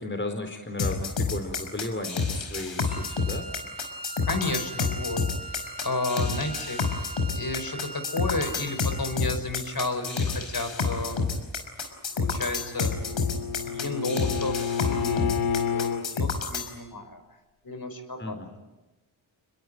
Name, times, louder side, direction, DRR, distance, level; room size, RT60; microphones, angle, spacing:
voice 1, 0.0-3.5 18.2-18.5, left 2 dB, 25° left, 5 dB, 4.3 m, -34 dB
sound 1, 0.8-16.7, left 4 dB, 70° left, 5.3 m, -29 dB
Wind instrument woodwind instrument, 2.9-9.2, right 2 dB, 60° right, 4.5 m, -41 dB
voice 2, 4.2-6.8 7.3-11.3 12.1-12.9 13.6-17.2 17.6-18.4, left 2 dB, 45° left, 7 dB, 5.6 m, -32 dB
Bowed string instrument, 12.3-16.1, left 7 dB, 90° left, 2.3 m, -30 dB
27.5 x 21.5 x 9.4 m, 1.0 s
cardioid pair, 55°, 48 cm